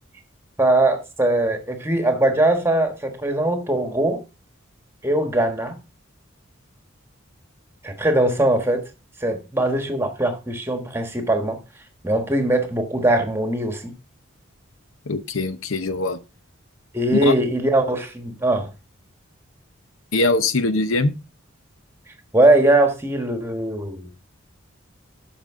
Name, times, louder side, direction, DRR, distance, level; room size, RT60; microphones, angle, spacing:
voice 1, 0.6-4.2 5.0-5.7 7.8-8.8 9.2-11.6 12.0-13.9 16.9-18.7 22.3-24.1, right 1 dB, 10° right, 1.3 m, -21 dB
voice 2, 15.1-16.2 17.2-17.3 20.1-21.1, left 2 dB, 80° left, 0.8 m, -22 dB
13.0 x 5.3 x 3.6 m
head